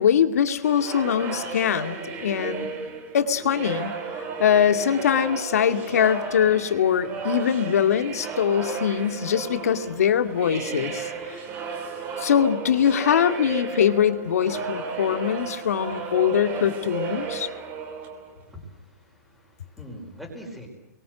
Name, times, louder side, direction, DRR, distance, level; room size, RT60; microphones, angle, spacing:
voice 1, 0.0-2.7 3.1-3.9 4.4-11.1 12.2-17.5, left 8 dB, 65° left, 8 dB, 2.3 m, -22 dB
sound 1, 0.6-18.5, right 5 dB, 20° right, 3.2 m, -34 dB
voice 2, 18.5-20.7, equal, ahead, -1 dB, 4.9 m, -42 dB
30.0 x 23.0 x 8.0 m, 0.74 s
hypercardioid pair, 175°, 9 cm